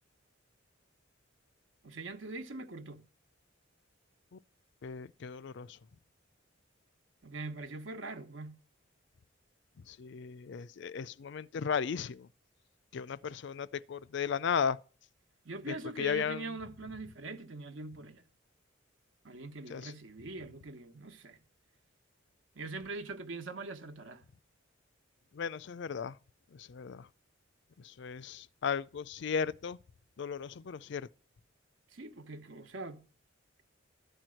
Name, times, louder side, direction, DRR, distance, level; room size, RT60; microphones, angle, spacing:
voice 1, 1.8-3.0 7.2-8.6 15.4-18.2 19.2-21.4 22.5-24.2 31.9-33.0, right 3 dB, 75° right, 1.2 m, -43 dB
voice 2, 4.8-5.8 9.9-12.3 12.9-14.8 15.7-16.5 19.7-19.9 25.3-26.2 26.5-27.1 27.8-29.8 30.2-31.1, left 6 dB, 65° left, 0.4 m, -35 dB
13.0 x 4.5 x 7.7 m
head